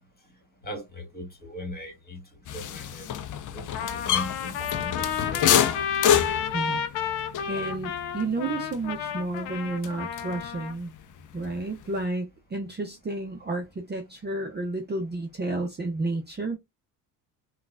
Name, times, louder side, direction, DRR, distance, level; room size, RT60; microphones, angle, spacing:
voice 1, 0.6-2.2 2.5-3.1 3.5-5.6, equal, 20° left, 2.1 m, -39 dB
sound 1, 2.5-10.6 10.9-12.0, left 9 dB, 45° left, 0.5 m, -28 dB
Trumpet, 3.7-10.8, left 7 dB, 80° left, 0.7 m, -31 dB
voice 2, 6.5-10.9 11.3-16.6, right 2 dB, 20° right, 0.7 m, -31 dB
3.7 x 2.4 x 2.4 m
supercardioid pair, 65°, 45 cm